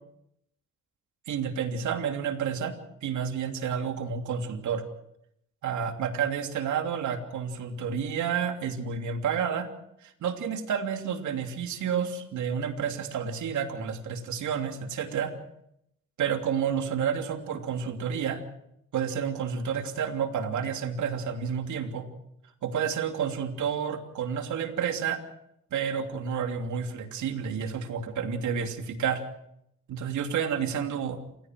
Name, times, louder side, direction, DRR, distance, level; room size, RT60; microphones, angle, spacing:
voice 1, 1.3-4.8 5.6-9.7 10.0-15.3 16.2-18.4 18.9-22.1 22.6-25.2 25.7-29.2 29.9-31.2, right 7 dB, 75° right, 5 dB, 3.1 m, -30 dB
28.5 x 16.5 x 6.3 m, 0.76 s
cardioid pair, 90°, 30 cm